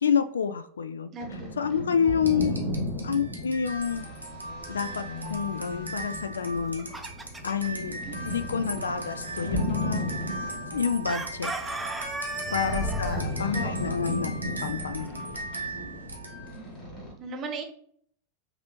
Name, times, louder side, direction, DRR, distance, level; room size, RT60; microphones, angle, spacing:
voice 1, 0.0-1.1 1.6-2.6 3.0-4.1 4.7-6.9 7.4-8.0 8.2-10.0 10.7-11.5 12.5-15.3, left 7 dB, 70° left, 12 dB, 0.3 m, -28 dB
voice 2, 1.1-2.8 8.0-8.4 12.8-13.3 13.5-13.7 16.5-17.6, right 3 dB, 30° right, 4 dB, 0.9 m, -41 dB
sound 1, 1.2-17.1, left 1 dB, 35° left, 1.9 m, -36 dB
sound 2, 2.2-16.7, right 1 dB, 85° right, 0.8 m, -38 dB
Chicken rooster, 6.5-7.7 11.1-13.2, right 2 dB, 10° right, 0.6 m, -35 dB
5.8 x 2.7 x 3.0 m, 0.62 s
figure-of-eight pair, 90°, 0 cm